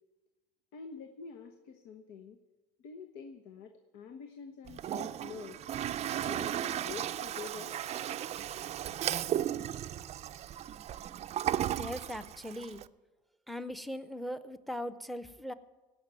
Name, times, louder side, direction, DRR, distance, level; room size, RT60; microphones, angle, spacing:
voice 1, 0.7-2.4 2.8-5.6 6.2-7.8, left 5 dB, 70° left, 6 dB, 1.1 m, -47 dB
Toilet flush, 4.7-12.9, right 11 dB, 40° right, 0.5 m, -35 dB
voice 2, 11.8-12.8 13.5-15.5, equal, ahead, 13 dB, 0.8 m, -39 dB
17.5 x 6.0 x 9.1 m, 1.2 s
supercardioid pair, 95°, 17 cm